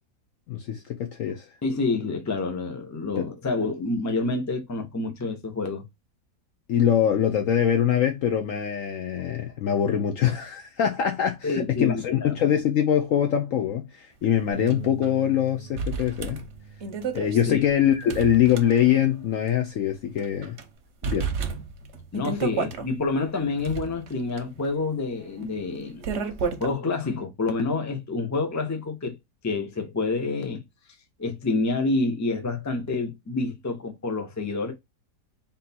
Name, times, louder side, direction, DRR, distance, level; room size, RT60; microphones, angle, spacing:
voice 1, 0.5-1.5 3.2-3.3 6.7-16.5 17.1-20.6 21.0-21.3, left 9 dB, 70° left, 0.8 m, -23 dB
voice 2, 1.6-5.8 11.4-12.3 17.5-17.6 22.1-26.0 26.6-29.1 29.4-30.6 31.2-34.7, left 3 dB, 20° left, 0.4 m, -28 dB
Bass guitar, 14.5-20.8, right 8 dB, 80° right, 0.4 m, -45 dB
sound 1, 14.7-14.8 15.0-15.1 15.8-19.2 19.5-19.6 20.2-20.6 21.0-22.9 23.4-26.7, right 6 dB, 55° right, 0.8 m, -32 dB
3.6 x 2.7 x 4.1 m
omnidirectional pair, 1.7 m